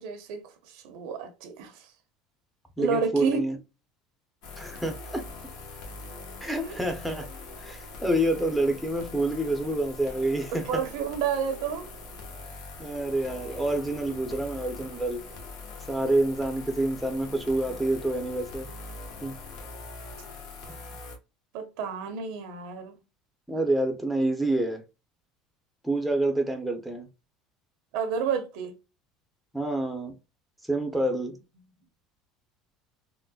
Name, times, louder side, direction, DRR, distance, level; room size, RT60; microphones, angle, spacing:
voice 1, 0.0-1.9 2.8-3.4 6.6-6.7 10.5-11.9 21.5-23.0 27.9-28.7, right 6 dB, 75° right, 0.9 m, -31 dB
voice 2, 2.8-3.6 4.6-5.2 6.4-7.3 7.6-10.8 12.8-15.2 15.9-18.7 19.2-19.3 23.5-24.8 25.8-27.1 29.5-30.1 30.7-31.4, right 1 dB, ahead, 0.8 m, -27 dB
sound 1, 4.4-21.2, left 3 dB, 65° left, 1.2 m, -42 dB
3.8 x 2.1 x 2.3 m
supercardioid pair, 115°, 0 cm